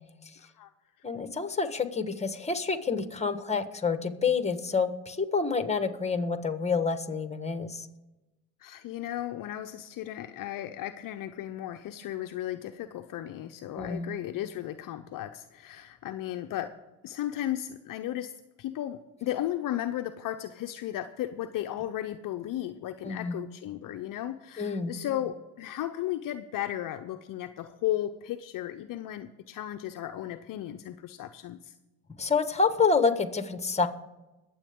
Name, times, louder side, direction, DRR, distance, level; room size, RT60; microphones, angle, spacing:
voice 1, 0.4-0.7 8.6-16.8 17.0-18.3 18.6-31.7, left 12 dB, 50° left, 7 dB, 0.7 m, -35 dB
voice 2, 1.0-7.9 13.7-14.1 23.0-23.4 24.6-24.9 32.2-33.9, left 4 dB, 15° left, 9 dB, 1.5 m, -28 dB
21.5 x 7.9 x 3.7 m, 1.1 s
hypercardioid pair, 75°, 41 cm